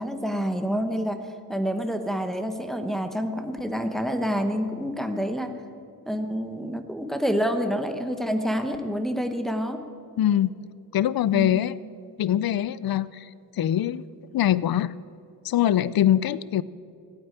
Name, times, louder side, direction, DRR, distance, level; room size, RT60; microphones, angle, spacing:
voice 1, 0.0-5.6 6.1-9.8 11.3-11.7, equal, ahead, 6 dB, 1.0 m, -28 dB
voice 2, 10.2-10.5 10.9-11.8 12.2-13.3 13.6-14.0 14.3-14.9 15.4-16.6, left 11 dB, 75° left, 18 dB, 0.5 m, -23 dB
15.5 x 8.8 x 9.8 m, 2.3 s
wide cardioid pair, 160°, 36 cm